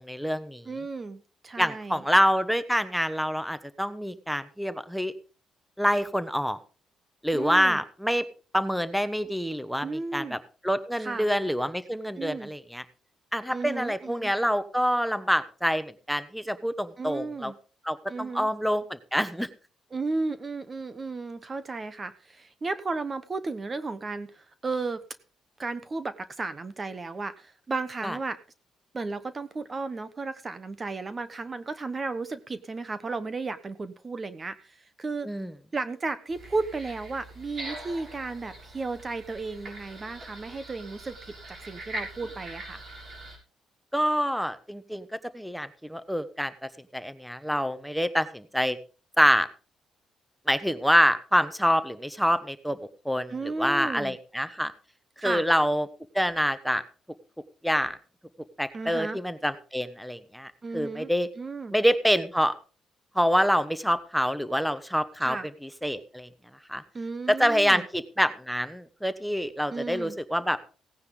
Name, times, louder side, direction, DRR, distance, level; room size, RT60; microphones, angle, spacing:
voice 1, 0.0-0.6 1.6-5.1 5.8-6.6 7.2-8.2 8.5-10.4 10.6-12.8 13.3-17.5 17.8-19.5 28.0-28.2 35.2-35.5 43.9-45.1 45.3-48.8 49.2-49.5 50.5-52.8 53.0-54.7 55.2-55.9 56.1-56.8 57.6-58.0 58.6-61.3 61.7-62.5 63.1-65.4 65.6-66.3 66.7-66.8 67.3-70.6, equal, ahead, 11 dB, 1.2 m, -26 dB
voice 2, 0.6-2.0 7.3-7.8 9.8-10.4 11.0-11.3 12.2-12.5 13.5-14.3 17.0-17.5 18.1-18.5 19.9-25.0 25.6-28.4 28.9-35.3 35.7-42.8 53.3-54.2 55.2-55.4 58.7-59.2 60.6-61.1 61.4-61.7 65.2-65.5 66.9-67.8 69.7-70.2, right 3 dB, 30° right, 13 dB, 1.1 m, -34 dB
sound 1, 36.3-43.4, right 1 dB, 55° right, 6.7 m, -42 dB
17.0 x 9.6 x 3.8 m, 0.36 s
cardioid pair, 90°, 0 cm